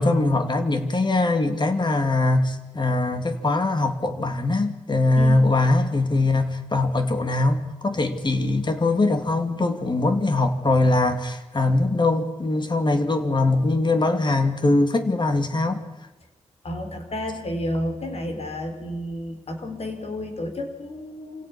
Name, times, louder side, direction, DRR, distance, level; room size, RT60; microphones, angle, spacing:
voice 1, 0.0-15.8, left 2 dB, 40° left, 2.7 m, -22 dB
voice 2, 5.1-5.5 16.6-21.5, left 1 dB, 60° left, 4.5 m, -31 dB
27.5 x 17.0 x 6.2 m
cardioid pair, 60°, 12 cm